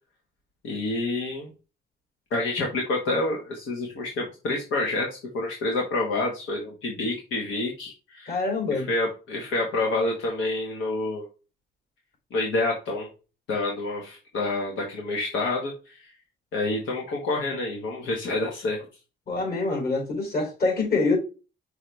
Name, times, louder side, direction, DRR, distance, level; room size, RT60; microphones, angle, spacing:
voice 1, 0.6-1.5 2.3-5.1 5.3-8.3 8.9-11.3 12.3-13.1 13.5-16.0 16.5-18.8, left 2 dB, 80° left, 1.6 m, -28 dB
voice 2, 8.3-8.9 19.3-21.2, left 3 dB, 50° left, 3.6 m, -25 dB
5.7 x 4.8 x 3.4 m
cardioid pair, 90°, 20 cm